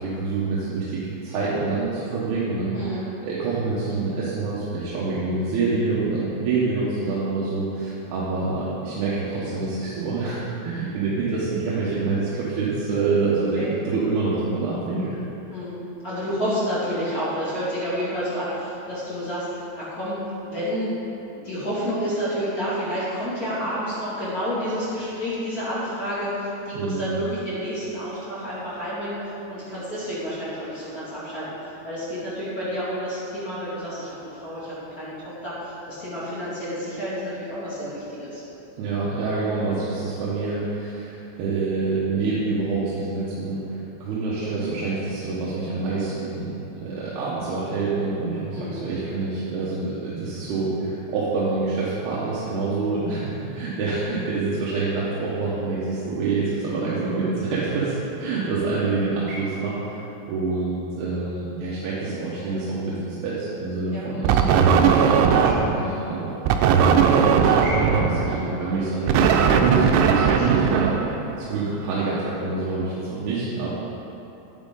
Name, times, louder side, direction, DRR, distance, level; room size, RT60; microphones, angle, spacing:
voice 1, 0.0-15.2 26.7-27.2 38.8-46.5 46.8-60.0 60.3-66.3 66.9-73.7, right 3 dB, 70° right, -8 dB, 2.9 m, -27 dB
voice 2, 16.0-20.9 21.4-29.2 29.5-35.5 35.9-38.4 48.5-48.8 58.2-58.5 63.9-64.1 67.0-67.3 68.2-68.5, equal, 35° left, -10 dB, 1.4 m, -30 dB
sound 1, 64.3-65.9 66.5-71.6, right 7 dB, 90° right, 3.0 m, -18 dB
10.0 x 9.5 x 3.8 m, 3.0 s
omnidirectional pair, 5.2 m